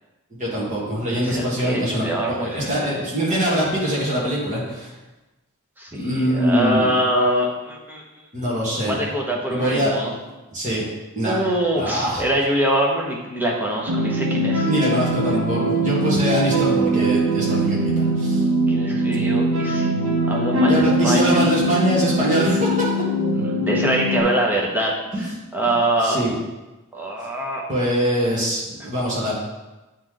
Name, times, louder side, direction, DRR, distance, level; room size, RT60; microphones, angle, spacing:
voice 1, 0.3-4.9 5.9-6.9 8.3-8.9 9.5-9.9 10.5-10.8 11.2-11.4 11.8-12.3 14.7-18.4 20.7-22.9 25.1-25.2 26.0-26.3 27.7-29.3, right 1 dB, 35° right, -5 dB, 1.8 m, -23 dB
voice 2, 1.1-3.0 3.3-3.4 5.8-8.0 8.9-10.1 11.2-14.7 17.3-17.6 18.7-21.4 23.3-26.2 26.9-27.6, right 1 dB, 10° right, -3 dB, 1.0 m, -24 dB
sound 1, 13.9-24.2, right 1 dB, 65° right, 0.7 m, -21 dB
8.6 x 3.3 x 3.8 m, 1.1 s
head